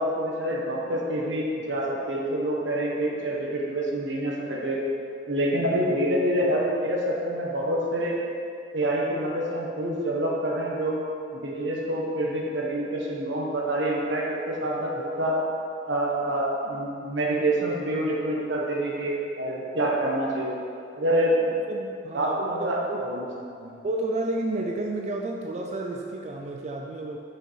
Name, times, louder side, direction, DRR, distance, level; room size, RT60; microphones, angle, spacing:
voice 1, 0.0-4.8 5.3-8.2 8.7-11.0 11.3-14.9 15.2-15.4 15.9-20.5 21.0-21.6 22.1-23.3 23.6-23.8, right 1 dB, 85° right, -3 dB, 1.4 m, -27 dB
voice 2, 14.6-15.0 21.7-23.1 23.8-27.2, right 2 dB, 40° right, 1 dB, 0.4 m, -31 dB
6.9 x 5.7 x 4.7 m, 2.6 s
head